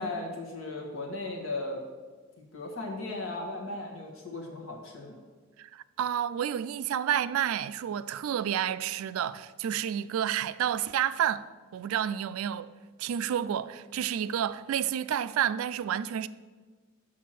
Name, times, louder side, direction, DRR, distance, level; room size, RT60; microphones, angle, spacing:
voice 1, 0.0-1.8 2.5-5.2, left 2 dB, 75° left, 1.6 m, -36 dB
voice 2, 5.6-11.5 11.7-12.7 13.0-16.3, right 9 dB, 85° right, 0.3 m, -30 dB
6.4 x 6.0 x 5.9 m
head